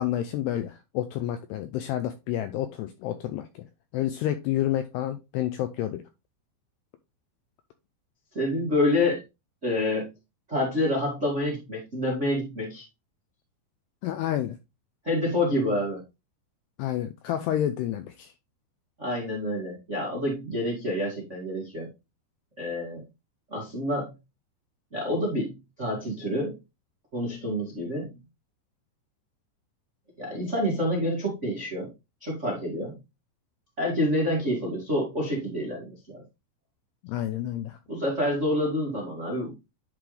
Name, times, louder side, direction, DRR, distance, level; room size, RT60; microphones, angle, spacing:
voice 1, 0.0-3.7 3.9-6.0 14.0-14.6 16.8-18.3 37.0-37.8, left 12 dB, 85° left, 9 dB, 2.4 m, -29 dB
voice 2, 8.3-9.2 9.6-10.1 10.5-12.8 15.0-16.0 19.0-21.9 22.6-23.0 23.5-24.1 24.9-26.6 27.1-28.1 30.2-31.9 32.2-33.0 33.8-36.2 37.9-39.5, left 1 dB, 80° right, -3 dB, 0.6 m, -28 dB
10.5 x 3.8 x 3.2 m, 0.25 s
omnidirectional pair, 5.3 m